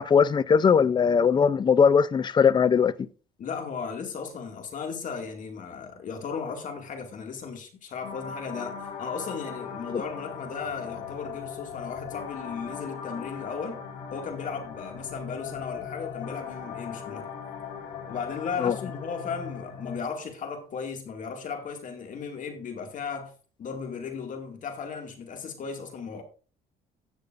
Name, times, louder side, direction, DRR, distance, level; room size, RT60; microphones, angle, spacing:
voice 1, 0.0-2.9 18.6-18.7, left 6 dB, 25° left, 0.4 m, -20 dB
voice 2, 3.4-13.8 14.1-17.3 18.1-23.3 23.6-26.2, left 5 dB, 50° left, 2.2 m, -36 dB
sound 1, 8.0-20.0, left 6 dB, 85° left, 3.3 m, -39 dB
17.5 x 6.7 x 2.5 m
cardioid pair, 110°, 17 cm